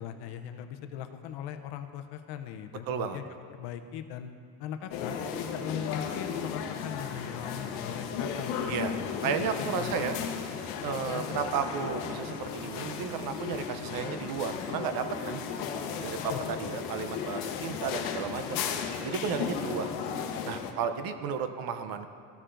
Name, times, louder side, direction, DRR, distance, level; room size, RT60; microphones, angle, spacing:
voice 1, 0.0-3.2 3.5-4.3 4.6-9.1 9.4-10.3 11.1-11.4 16.3-16.7, left 9 dB, 60° left, 7 dB, 0.7 m, -40 dB
voice 2, 2.9-3.2 8.7-8.9 9.2-10.2 10.8-15.4 16.0-18.6 19.0-19.9 20.4-22.1, right 6 dB, 50° right, 9 dB, 0.6 m, -33 dB
sound 1, 4.9-20.7, left 7 dB, 85° left, 0.9 m, -35 dB
14.5 x 6.8 x 2.5 m, 2.3 s
cardioid pair, 140°, 45 cm